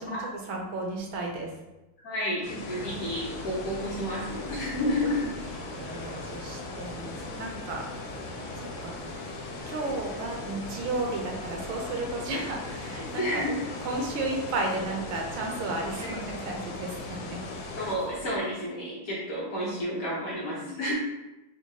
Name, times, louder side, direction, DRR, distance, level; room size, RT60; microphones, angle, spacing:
voice 1, 0.0-1.5 5.8-7.9 8.6-9.0 9.7-13.4 13.8-17.4 20.6-20.7, right 2 dB, 75° right, 1 dB, 1.3 m, -33 dB
voice 2, 2.0-5.3 13.2-13.5 16.0-16.1 17.8-20.9, left 1 dB, 65° left, -6 dB, 0.9 m, -31 dB
sound 1, 2.4-18.0, left 3 dB, 80° left, 1.4 m, -40 dB
sound 2, 2.6-18.4, equal, 25° right, 0.4 m, -43 dB
4.4 x 2.3 x 2.7 m, 1.0 s
omnidirectional pair, 2.4 m